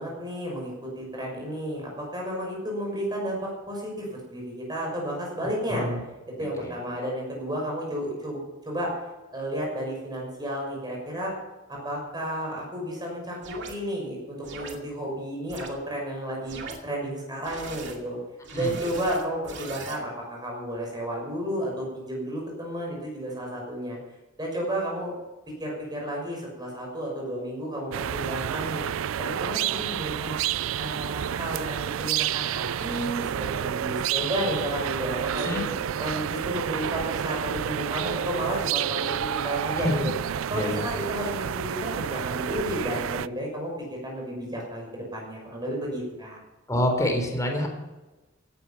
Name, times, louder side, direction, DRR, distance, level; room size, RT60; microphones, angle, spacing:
voice 1, 0.0-5.9 6.4-8.9 9.3-11.3 11.7-18.2 18.5-24.0 24.4-25.1 25.6-28.8 29.2-30.4 30.8-33.3 33.6-35.6 36.0-40.1 40.5-46.4, equal, 20° right, -1 dB, 5.9 m, -32 dB
voice 2, 5.7-6.0 6.4-6.7 18.5-18.7 35.4-35.6 39.7-40.1 40.5-40.8 46.7-47.7, left 1 dB, 15° left, 2 dB, 3.8 m, -27 dB
sound 1, 13.4-13.8 14.4-14.8 15.5-15.7 16.4-16.8 17.4-18.0 18.4-20.0, right 4 dB, 60° right, 2.4 m, -40 dB
sound 2, 27.9-43.3, right 9 dB, 80° right, 0.4 m, -29 dB
17.0 x 11.0 x 5.8 m, 1.1 s
head